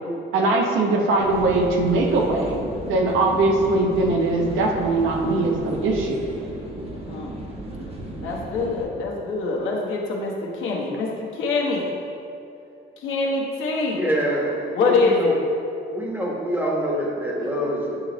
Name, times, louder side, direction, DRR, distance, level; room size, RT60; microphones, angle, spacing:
voice 1, 0.3-6.2, right 2 dB, 85° right, 1 dB, 0.8 m, -21 dB
sound 1, 1.2-8.8, right 1 dB, 30° right, 1.2 m, -34 dB
voice 2, 8.2-11.9 13.0-14.0 14.7-15.4 17.4-17.7, left 3 dB, 85° left, -2 dB, 1.1 m, -24 dB
voice 3, 13.9-15.4 15.9-18.0, right 1 dB, 10° right, -3 dB, 1.3 m, -25 dB
8.7 x 3.3 x 3.9 m, 2.6 s
cardioid pair, 90°, 20 cm